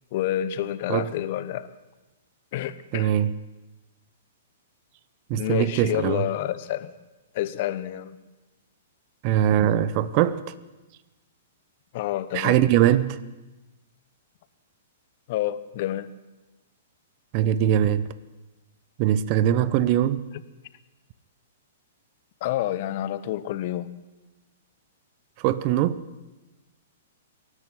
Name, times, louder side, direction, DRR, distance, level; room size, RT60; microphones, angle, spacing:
voice 1, 0.1-1.7 2.5-3.1 5.3-6.9 7.3-8.2 11.9-12.6 15.3-16.1 22.4-23.9, left 13 dB, 50° left, 1.1 m, -28 dB
voice 2, 2.9-3.3 5.3-6.3 9.2-10.4 12.3-13.2 17.3-18.1 19.0-20.3 25.4-26.0, right 11 dB, 40° right, 0.9 m, -22 dB
24.0 x 11.5 x 9.6 m
figure-of-eight pair, 110°, 0 cm